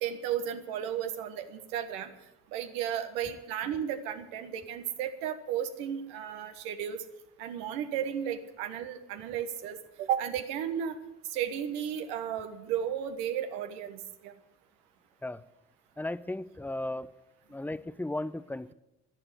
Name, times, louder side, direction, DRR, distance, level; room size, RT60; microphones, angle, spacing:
voice 1, 0.0-2.1 2.5-7.0 7.4-11.0 11.3-14.3, right 9 dB, 75° right, 7 dB, 1.5 m, -34 dB
voice 2, 16.0-17.1 17.5-18.7, left 1 dB, 5° left, 17 dB, 0.6 m, -35 dB
12.0 x 10.5 x 9.2 m, 0.93 s
hypercardioid pair, 50°, 43 cm